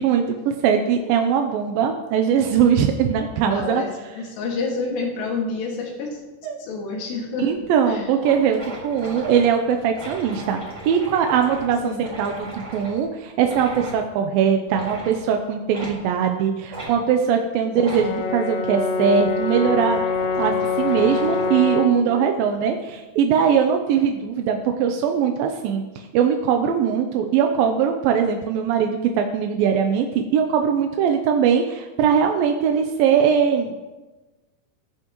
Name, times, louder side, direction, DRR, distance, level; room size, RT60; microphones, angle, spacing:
voice 1, 0.0-3.8 6.4-6.6 7.4-20.0 20.3-33.8, right 7 dB, 75° right, 4 dB, 2.2 m, -21 dB
voice 2, 3.5-3.9 4.2-6.2 6.6-7.6 7.8-8.1 11.8-12.1, left 4 dB, 85° left, -1 dB, 4.2 m, -28 dB
sound 1, 7.5-7.6 7.9-8.0 8.2-13.0 13.4-14.0 14.7-15.2 15.7-16.0 16.7-16.9 17.8-18.1 18.9-21.6, right 2 dB, 25° right, 4.9 m, -37 dB
Brass instrument, 17.8-22.1, left 4 dB, 70° left, 2.4 m, -24 dB
20.0 x 11.0 x 3.1 m, 1.2 s
omnidirectional pair, 4.7 m